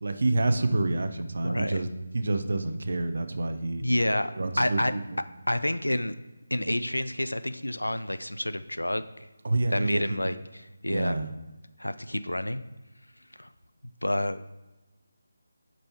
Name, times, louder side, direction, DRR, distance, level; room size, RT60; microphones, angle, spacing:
voice 1, 0.0-3.9 4.4-5.0 9.4-10.3 10.9-11.3, right 2 dB, 50° right, 9 dB, 0.6 m, -28 dB
voice 2, 1.4-1.8 3.8-4.3 4.6-4.9 5.5-6.1 6.5-9.0 9.7-11.2 11.8-12.6 13.4-13.5 14.0-14.4, left 1 dB, 80° left, 12 dB, 0.4 m, -28 dB
8.7 x 5.3 x 2.9 m, 1.1 s
figure-of-eight pair, 155°, 0 cm